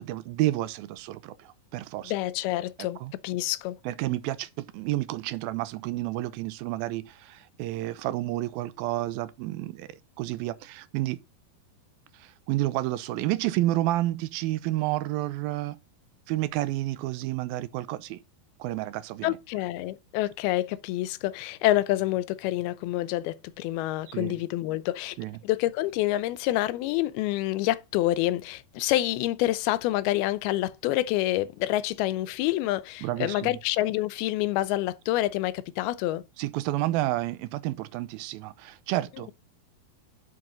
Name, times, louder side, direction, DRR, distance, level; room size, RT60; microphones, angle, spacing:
voice 1, 0.0-2.1 3.0-3.1 3.9-9.9 10.2-11.2 12.1-15.8 16.3-18.2 18.6-19.4 24.1-24.4 25.2-25.4 33.0-33.6 36.4-39.3, right 16 dB, 85° right, 2.4 m, -30 dB
voice 2, 2.0-3.0 3.2-3.8 19.2-25.2 25.4-36.2, left 15 dB, 90° left, 2.6 m, -27 dB
11.0 x 6.2 x 3.9 m
omnidirectional pair, 4.3 m